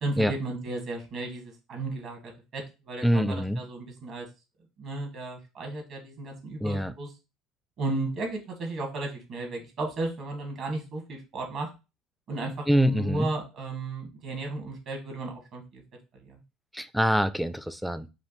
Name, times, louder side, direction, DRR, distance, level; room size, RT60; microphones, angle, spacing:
voice 1, 0.0-4.3 4.8-7.1 7.8-11.7 12.3-15.8 16.2-16.4, right 2 dB, 55° right, 3 dB, 1.5 m, -34 dB
voice 2, 3.0-3.6 6.6-6.9 12.7-13.3 16.7-18.1, equal, ahead, 13 dB, 0.4 m, -25 dB
4.8 x 2.6 x 3.1 m, 0.28 s
hypercardioid pair, 70°, 0 cm